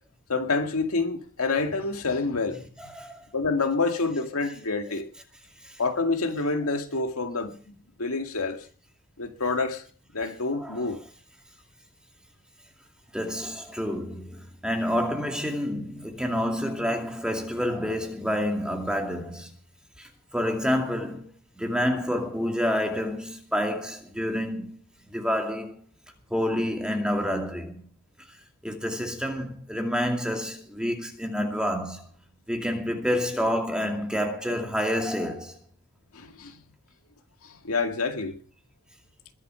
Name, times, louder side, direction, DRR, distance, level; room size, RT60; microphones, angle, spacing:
voice 1, 0.3-2.7 3.3-5.1 5.8-7.6 8.0-8.6 9.2-9.8 10.1-11.0 36.1-36.6 37.4-38.4, left 3 dB, 80° left, 2.1 m, -27 dB
voice 2, 13.1-19.5 20.0-21.3 21.6-24.8 25.1-25.8 26.3-27.8 28.6-32.0 32.5-35.6, equal, 5° right, 2.4 m, -28 dB
21.5 x 8.4 x 5.7 m
head